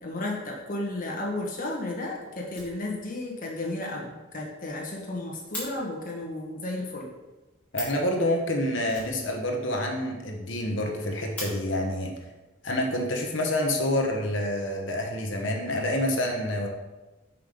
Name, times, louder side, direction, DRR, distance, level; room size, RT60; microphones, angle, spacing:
voice 1, 0.0-7.1, left 2 dB, 40° left, -2 dB, 1.5 m, -33 dB
Fire, 2.5-3.3 3.6-3.7 4.0-4.1 4.4-4.5 4.7-5.7 7.4-7.5 7.7-8.1 8.9-9.8 10.1-10.2 10.5-10.6 11.0-11.5 12.5-12.6 13.3-13.9, equal, 5° left, 2.6 m, -40 dB
voice 2, 7.7-12.1 12.6-16.7, left 1 dB, 60° left, 2 dB, 1.1 m, -27 dB
5.8 x 5.7 x 5.1 m, 1.1 s
head